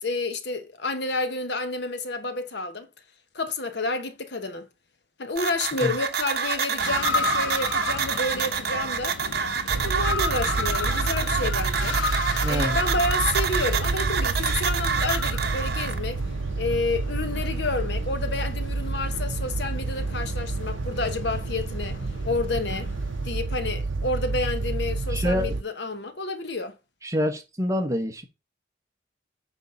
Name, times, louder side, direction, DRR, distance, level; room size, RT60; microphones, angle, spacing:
voice 1, 0.0-2.9 3.3-4.7 5.2-9.2 9.7-12.0 12.5-16.2 16.6-22.0 22.2-22.9 23.2-26.7, left 3 dB, 60° left, 1.0 m, -30 dB
sound 1, 5.4-16.0, right 6 dB, 55° right, 1.0 m, -27 dB
sound 2, 6.8-23.3, left 5 dB, 85° left, 0.6 m, -35 dB
sound 3, 9.7-25.6, right 3 dB, 80° right, 0.6 m, -29 dB
voice 2, 12.4-12.8 25.1-25.6 27.0-28.2, equal, 15° right, 1.2 m, -26 dB
9.4 x 4.1 x 5.4 m
head